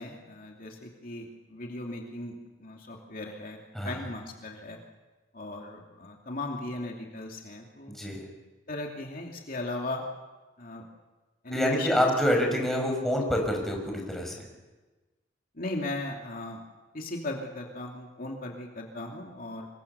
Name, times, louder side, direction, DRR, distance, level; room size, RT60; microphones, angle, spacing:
voice 1, 0.0-3.6 3.8-4.8 5.3-7.9 8.7-10.0 10.6-10.8 11.4-12.0 12.8-12.9 15.6-16.6 16.9-19.7, left 2 dB, 50° left, 1 dB, 2.7 m, -37 dB
voice 2, 7.9-8.2 11.5-14.3, equal, ahead, 0 dB, 6.1 m, -26 dB
26.0 x 22.5 x 7.0 m, 1.2 s
head